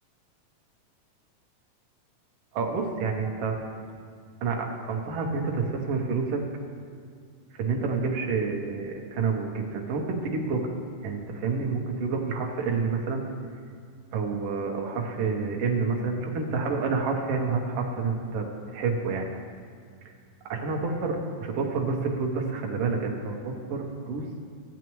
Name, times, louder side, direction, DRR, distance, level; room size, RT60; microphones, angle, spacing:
voice 1, 2.5-3.6 4.4-6.4 7.6-13.2 14.1-18.5 18.7-19.3 20.5-24.3, right 4 dB, 80° right, 0 dB, 1.3 m, -28 dB
14.0 x 8.3 x 3.1 m, 2.2 s
omnidirectional pair, 4.1 m